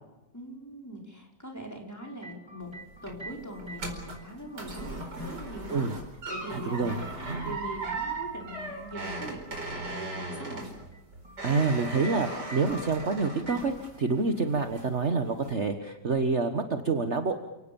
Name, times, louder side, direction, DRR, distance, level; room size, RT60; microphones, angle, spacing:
voice 1, 0.3-2.7 3.0-6.0 6.3-7.1 7.4-9.4 9.7-10.7, equal, 10° left, 1 dB, 5.2 m, -42 dB
sound 1, 2.0-4.9 6.1-9.9 10.9-14.2 14.4-14.8 16.1-16.2, right 3 dB, 15° right, 3.3 m, -49 dB
sound 2, 2.6-14.2 14.5-15.0 15.4-15.5, right 2 dB, 75° right, 5.2 m, -38 dB
voice 2, 6.5-7.0 7.3-7.5 11.4-17.4, right 4 dB, 40° right, 7 dB, 1.6 m, -27 dB
30.0 x 18.5 x 7.1 m, 1.0 s
omnidirectional pair, 1.8 m